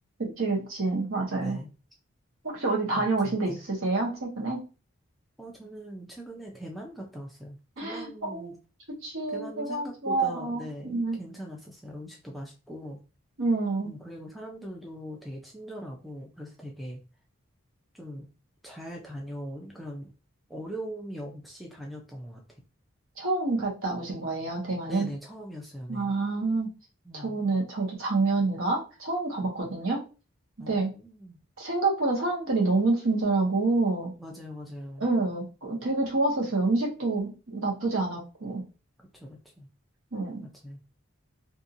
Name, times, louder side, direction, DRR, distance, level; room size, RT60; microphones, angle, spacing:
voice 1, 0.2-1.6 2.4-4.6 7.8-8.5 8.9-11.2 13.4-13.9 23.2-25.1 25.9-26.7 27.1-30.0 30.6-30.9 31.6-34.1 35.0-38.6 40.1-40.5, right 3 dB, 70° right, -2 dB, 1.0 m, -28 dB
voice 2, 1.3-1.7 2.9-3.6 5.4-8.6 9.3-13.0 13.8-17.0 17.9-18.2 18.6-20.1 20.5-22.4 24.9-26.1 27.1-27.4 30.6-31.4 34.2-35.1 39.1-39.7 40.4-40.8, equal, ahead, -1 dB, 0.4 m, -41 dB
2.8 x 2.6 x 2.5 m, 0.33 s
head